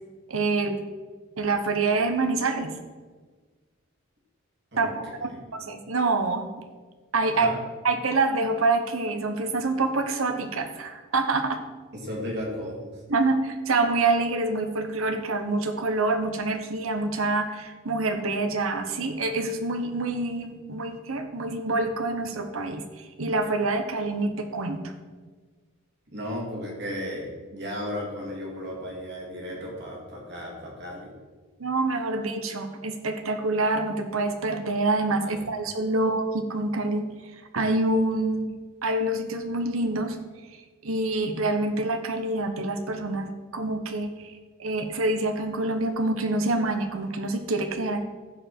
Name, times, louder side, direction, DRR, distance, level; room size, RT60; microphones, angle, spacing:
voice 1, 0.3-0.8 1.4-2.7 4.8-6.5 7.1-7.5 7.8-11.6 13.1-24.9 31.6-37.0 37.3-38.5 38.8-40.2 40.8-44.3 44.6-48.0, right 2 dB, 85° right, 7 dB, 1.0 m, -26 dB
voice 2, 11.9-13.0 26.1-31.1 35.3-35.4, equal, 55° right, -2 dB, 2.7 m, -35 dB
15.0 x 5.2 x 4.5 m, 1.4 s
head